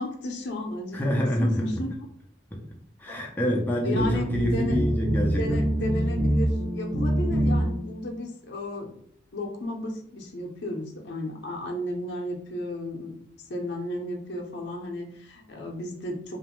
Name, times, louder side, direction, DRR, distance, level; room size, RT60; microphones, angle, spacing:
voice 1, 0.0-1.9 3.1-3.3 3.8-4.8 5.4-8.9 9.3-13.2 13.5-16.4, left 1 dB, 65° left, 1 dB, 0.6 m, -33 dB
voice 2, 0.9-1.7 2.5-2.6 3.0-5.6, equal, 10° left, -1 dB, 0.5 m, -26 dB
sound 1, 3.9-8.0, right 1 dB, 55° right, 0.6 m, -25 dB
2.5 x 2.2 x 3.0 m, 0.63 s
head